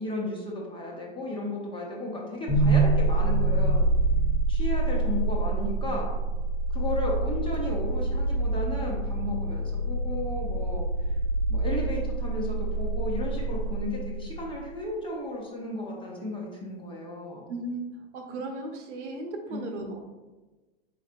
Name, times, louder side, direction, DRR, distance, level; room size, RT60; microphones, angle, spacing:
voice 1, 0.0-3.9 4.5-6.1 6.7-11.1 11.5-17.5 19.5-19.6, left 1 dB, 15° left, -2 dB, 0.8 m, -34 dB
sound 1, 2.5-14.5, right 2 dB, 80° left, 1.5 m, -26 dB
voice 2, 17.5-17.8 18.1-20.0, right 2 dB, 70° right, 2 dB, 1.0 m, -36 dB
4.3 x 4.1 x 2.5 m, 1.2 s
hypercardioid pair, 115°, 36 cm